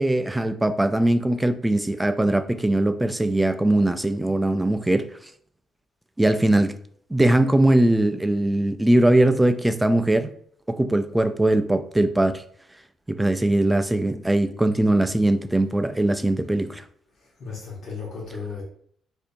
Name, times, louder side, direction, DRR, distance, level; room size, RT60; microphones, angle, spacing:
voice 1, 0.0-5.1 6.2-6.7 7.1-10.3 10.7-12.4 13.1-16.8, right 1 dB, 10° right, 0.3 m, -21 dB
voice 2, 17.2-18.6, left 5 dB, 60° left, 1.1 m, -35 dB
2.7 x 2.6 x 4.2 m
cardioid pair, 90°, 0 cm